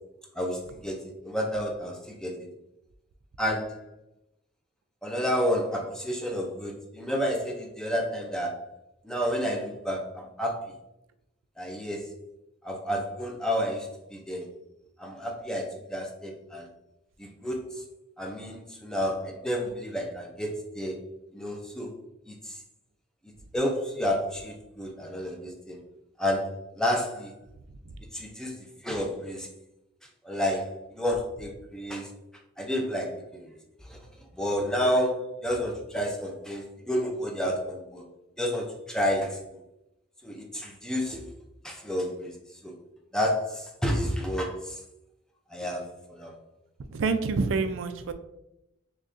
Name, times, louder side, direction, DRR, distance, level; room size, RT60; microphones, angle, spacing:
voice 1, 0.4-2.5 3.4-3.8 5.0-8.7 9.0-10.7 11.6-12.1 12.6-14.5 15.0-16.7 17.2-17.7 18.2-21.0 21.3-21.9 22.3-22.6 23.5-25.8 26.2-27.3 28.1-29.5 30.2-32.1 32.6-33.5 33.9-34.0 34.4-38.0 38.4-39.6 40.2-41.2 41.6-42.3 42.6-42.7 43.1-44.8 45.5-46.4, equal, 5° left, 1 dB, 0.4 m, -30 dB
voice 2, 46.9-48.1, right 4 dB, 75° right, 10 dB, 0.4 m, -27 dB
6.3 x 2.2 x 2.5 m, 0.87 s
head